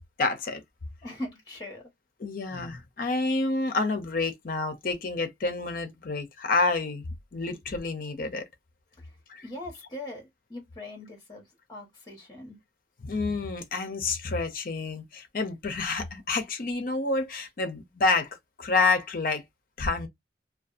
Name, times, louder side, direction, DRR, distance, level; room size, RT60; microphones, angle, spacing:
voice 1, 0.2-0.6 2.2-8.4 9.3-9.4 13.0-18.3 18.6-19.4 19.8-20.1, left 3 dB, 50° left, 0.5 m, -28 dB
voice 2, 1.0-1.9 9.0-9.1 9.4-12.6, left 1 dB, 25° left, 1.2 m, -41 dB
2.5 x 2.3 x 2.5 m
head